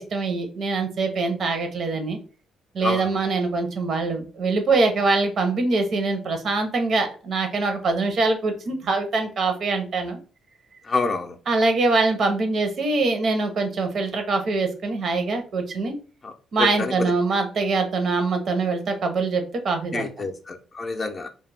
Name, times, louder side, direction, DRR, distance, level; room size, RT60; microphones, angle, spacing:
voice 1, 0.0-2.2 2.7-10.2 11.5-16.0 16.5-20.3, right 3 dB, 60° right, 6 dB, 0.6 m, -23 dB
voice 2, 10.9-11.3 16.8-16.9 19.9-21.3, left 3 dB, 35° left, 5 dB, 0.4 m, -27 dB
2.2 x 2.1 x 3.2 m, 0.37 s
cardioid pair, 90°, 0 cm